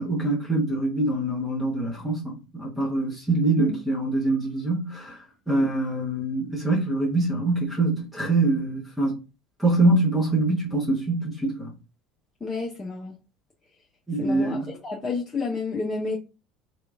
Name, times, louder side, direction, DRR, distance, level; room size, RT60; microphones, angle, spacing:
voice 1, 0.0-9.2 9.6-11.7 14.1-14.7, right 2 dB, 5° right, 1.1 m, -24 dB
voice 2, 12.4-13.1 14.2-14.6 14.8-16.2, left 4 dB, 15° left, 0.7 m, -30 dB
3.3 x 2.9 x 2.5 m
figure-of-eight pair, 70°, 0 cm